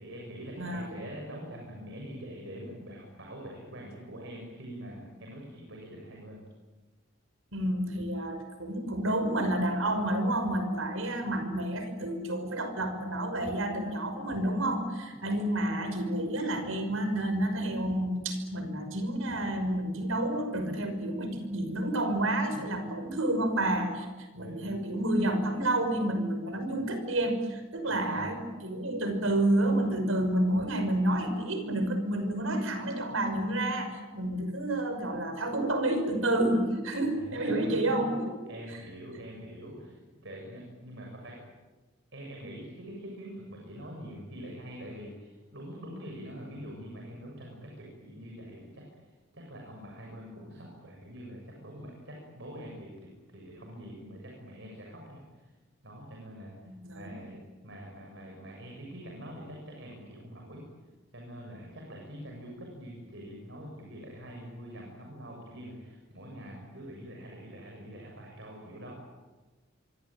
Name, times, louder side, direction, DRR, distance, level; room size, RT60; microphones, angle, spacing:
voice 1, 0.0-6.4 15.1-15.4 22.5-22.6 24.3-24.8 27.8-28.4 37.0-38.1 38.5-41.4 42.1-55.5 55.8-60.6 61.1-68.9, equal, 60° right, 0 dB, 7.2 m, -44 dB
voice 2, 0.6-0.9 7.5-24.1 24.4-38.3 56.6-57.1, right 1 dB, 80° right, 8 dB, 5.8 m, -29 dB
26.0 x 24.5 x 9.1 m, 1.2 s
head